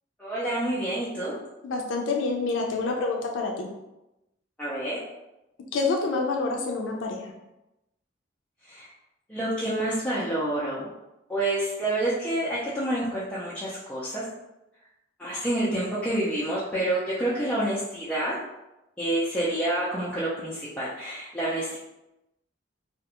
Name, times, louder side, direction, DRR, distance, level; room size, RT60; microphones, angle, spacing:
voice 1, 0.2-1.3 4.6-5.0 8.6-8.9 9.3-10.9 11.3-14.2 15.2-18.3 19.0-21.8, right 1 dB, 5° left, -10 dB, 0.4 m, -28 dB
voice 2, 1.6-3.7 5.7-7.2, left 3 dB, 90° left, 1 dB, 0.4 m, -27 dB
2.4 x 2.2 x 2.8 m, 0.95 s
head